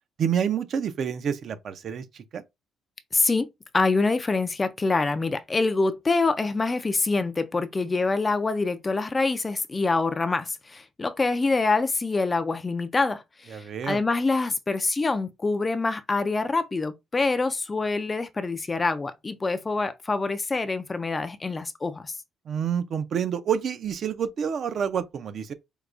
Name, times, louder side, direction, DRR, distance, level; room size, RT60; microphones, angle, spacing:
voice 1, 0.2-2.4 13.5-14.0 22.5-25.5, right 8 dB, 50° right, 0.5 m, -28 dB
voice 2, 3.1-3.5 3.7-22.1, left 3 dB, 20° left, 0.3 m, -25 dB
4.6 x 2.2 x 2.5 m
cardioid pair, 140°, 0 cm